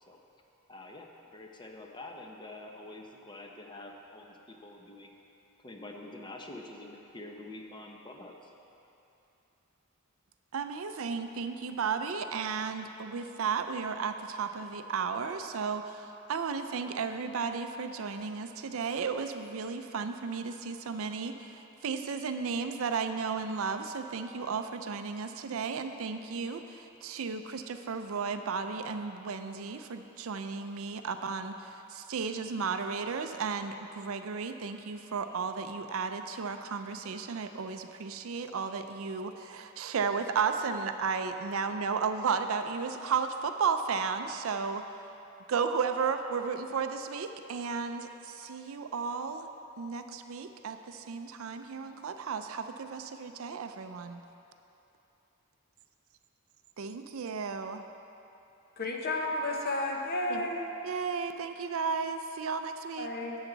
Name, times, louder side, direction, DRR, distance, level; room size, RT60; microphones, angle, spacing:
voice 1, 0.7-5.2 5.6-8.5, left 2 dB, 20° left, 1 dB, 0.7 m, -46 dB
voice 2, 10.5-44.8 45.5-49.5 49.8-54.2 56.8-57.8 60.3-60.5 60.8-63.1, right 5 dB, 70° right, 8 dB, 0.5 m, -34 dB
voice 3, 58.8-60.7 63.0-63.4, left 2 dB, 50° left, 0 dB, 1.0 m, -32 dB
10.5 x 8.0 x 3.9 m, 2.9 s
head